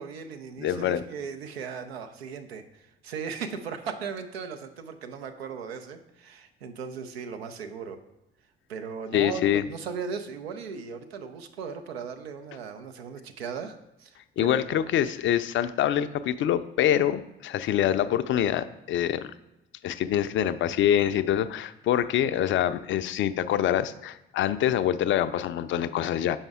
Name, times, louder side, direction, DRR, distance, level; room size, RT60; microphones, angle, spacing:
voice 1, 0.0-8.0 8.7-14.9, right 6 dB, 85° right, 8 dB, 0.5 m, -37 dB
voice 2, 0.6-1.0 9.1-9.6 14.4-19.3 19.8-26.4, left 10 dB, 40° left, 13 dB, 0.4 m, -25 dB
7.0 x 5.4 x 3.5 m, 0.89 s
figure-of-eight pair, 50°, 30 cm